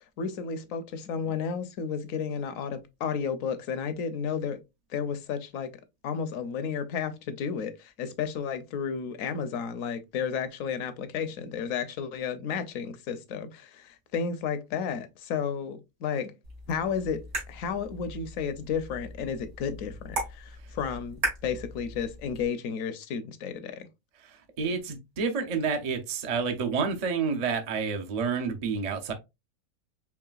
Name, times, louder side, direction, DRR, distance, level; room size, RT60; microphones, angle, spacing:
voice 1, 0.2-4.6 4.9-5.7 6.0-16.3 16.7-23.9, left 6 dB, 70° left, 1.0 m, -32 dB
sound 1, 16.4-22.5, right 2 dB, 75° right, 2.2 m, -38 dB
voice 2, 24.2-29.1, right 5 dB, 55° right, 0.4 m, -29 dB
4.7 x 3.0 x 2.3 m
omnidirectional pair, 1.5 m